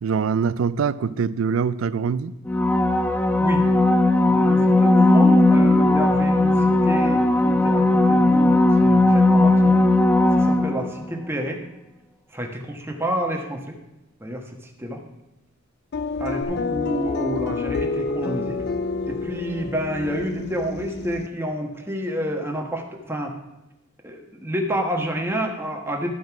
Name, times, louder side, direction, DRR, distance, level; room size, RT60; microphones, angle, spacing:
voice 1, 0.0-2.3, right 6 dB, 75° right, 17 dB, 0.4 m, -23 dB
sound 1, 2.5-11.1 16.4-16.5, left 2 dB, 10° left, 0.6 m, -17 dB
voice 2, 4.3-9.8 10.4-11.6 12.3-13.8 14.2-15.0 16.2-18.6 19.1-23.3 24.0-26.1, equal, 10° right, 1 dB, 1.3 m, -29 dB
sound 2, 15.9-21.3, left 3 dB, 55° left, 0.5 m, -28 dB
12.5 x 5.2 x 5.9 m, 0.95 s
head